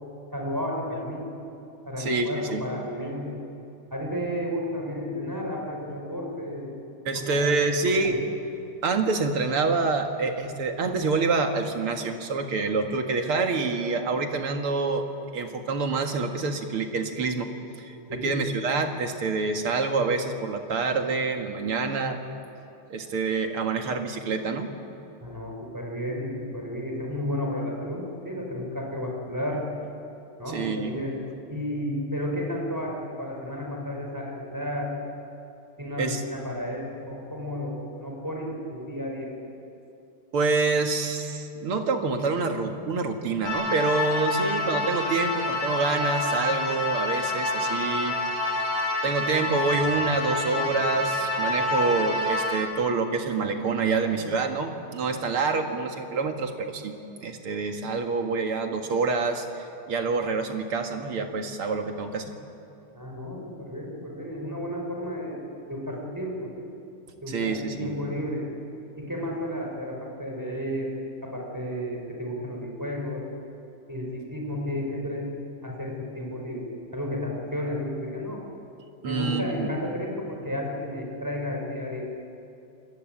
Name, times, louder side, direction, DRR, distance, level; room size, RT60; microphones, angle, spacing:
voice 1, 0.3-1.3 1.9-3.4 3.9-6.7 7.1-8.2 18.1-18.4 25.2-29.6 30.4-31.2 31.5-34.9 35.8-39.3 62.9-66.7 67.2-68.4 69.0-70.9 71.2-73.2 73.9-75.3 75.6-78.4 79.0-82.1, left 1 dB, 10° right, -1 dB, 5.2 m, -32 dB
voice 2, 2.0-2.6 7.1-8.2 8.8-15.1 15.3-17.5 17.8-18.0 18.2-22.2 22.9-24.7 30.5-30.9 36.0-36.2 40.3-48.2 48.5-48.6 49.0-57.0 57.2-62.3 67.3-67.9 79.0-79.7, right 4 dB, 75° right, 4 dB, 2.8 m, -27 dB
sound 1, 43.4-52.6, left 2 dB, 80° left, 4.9 m, -27 dB
27.0 x 20.5 x 9.0 m, 2.8 s
omnidirectional pair, 2.4 m